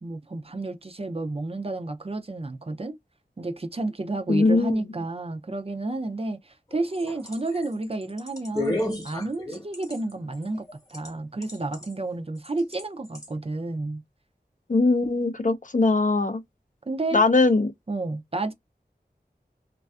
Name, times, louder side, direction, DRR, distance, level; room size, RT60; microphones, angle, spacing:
voice 1, 0.0-3.0 3.4-14.0 16.9-17.2 17.9-18.5, right 2 dB, 35° right, 0.4 m, -31 dB
voice 2, 4.3-4.8 14.7-16.4 17.1-17.7, left 3 dB, 50° left, 0.4 m, -21 dB
sound 1, 6.7-11.1 11.4-11.9 12.4-12.8 13.2-13.3, left 1 dB, 20° left, 0.9 m, -32 dB
2.4 x 2.3 x 2.3 m
wide cardioid pair, 40°, 17 cm